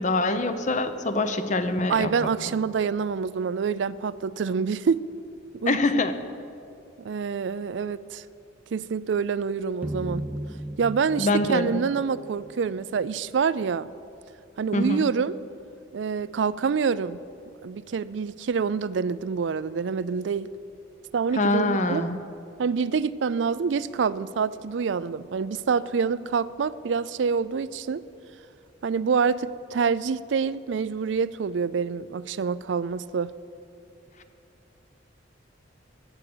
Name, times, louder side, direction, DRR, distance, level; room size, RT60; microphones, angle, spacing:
voice 1, 0.0-2.3 5.7-6.1 11.2-11.9 14.7-15.0 21.3-22.2, left 2 dB, 40° left, 9 dB, 0.8 m, -24 dB
voice 2, 1.9-5.0 5.6-5.8 7.0-8.2 8.7-10.2 10.8-13.9 14.6-15.4 15.9-17.2 17.6-20.5 21.1-22.1 22.6-28.0 28.8-33.3, right 5 dB, 75° right, 17 dB, 0.4 m, -26 dB
sound 1, 9.8-13.0, right 1 dB, 10° right, 0.3 m, -36 dB
14.0 x 8.7 x 7.9 m, 2.6 s
head